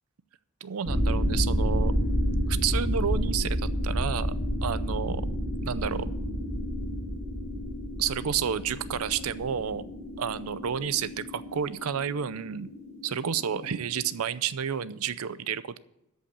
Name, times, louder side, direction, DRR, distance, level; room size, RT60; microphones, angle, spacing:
voice 1, 0.6-1.9 2.5-4.3 4.6-5.3 5.6-6.1 8.0-9.8 10.2-12.7 13.0-15.8, right 8 dB, 90° right, 15 dB, 0.5 m, -30 dB
sound 1, 0.8-14.2, equal, 35° right, 3.0 m, -30 dB
13.0 x 5.6 x 8.3 m, 0.88 s
head